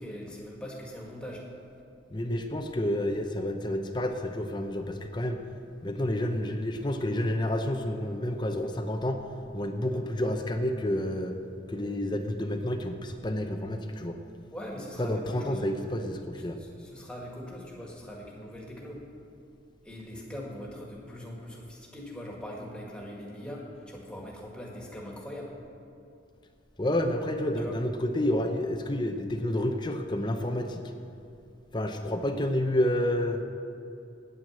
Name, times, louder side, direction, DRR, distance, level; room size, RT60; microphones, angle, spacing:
voice 1, 0.0-1.4 14.5-15.7 16.6-19.0 19.8-25.6 27.6-27.8, equal, 5° left, -2 dB, 1.8 m, -41 dB
voice 2, 2.1-5.4 5.8-9.2 9.5-11.3 11.7-14.2 15.0-16.6 26.8-30.9 31.7-33.4, left 1 dB, 25° left, 5 dB, 0.6 m, -29 dB
9.3 x 9.0 x 7.3 m, 2.7 s
head